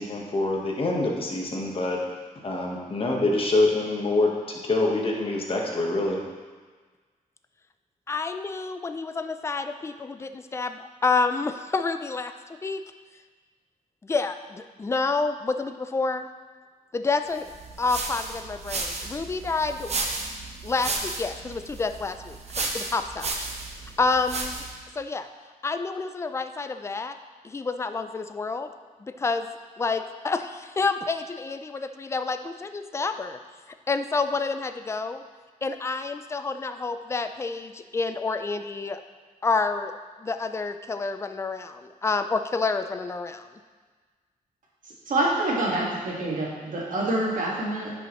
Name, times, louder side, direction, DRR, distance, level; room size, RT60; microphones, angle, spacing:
voice 1, 0.0-2.0 2.4-6.2, left 2 dB, 40° left, -1 dB, 1.3 m, -25 dB
voice 2, 8.1-12.3 12.6-12.8 14.0-16.3 16.9-17.5 17.8-20.4 20.6-22.4 22.7-23.5 23.7-24.6 25.0-25.3 25.6-27.2 27.4-28.7 29.0-29.5 29.8-33.4 33.9-35.2 35.6-39.0 39.4-39.9 40.2-43.5, left 4 dB, 20° left, 9 dB, 0.4 m, -28 dB
sound 1, 17.5-24.8, right 3 dB, 50° right, 1.0 m, -33 dB
voice 3, 45.1-47.9, right 1 dB, 65° right, -4 dB, 1.9 m, -26 dB
10.0 x 5.5 x 3.1 m, 1.4 s
wide cardioid pair, 115°, 15 cm